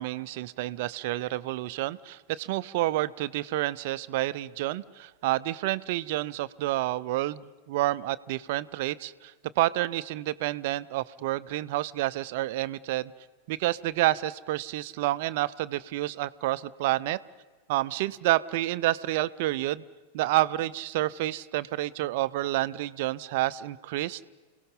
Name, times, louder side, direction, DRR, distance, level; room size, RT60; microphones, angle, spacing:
voice 1, 0.0-13.1 13.5-17.2 17.7-19.8 20.1-24.3, right 16 dB, 50° right, 16 dB, 0.5 m, -29 dB
29.0 x 17.5 x 5.6 m, 1.3 s
figure-of-eight pair, 90°, 0 cm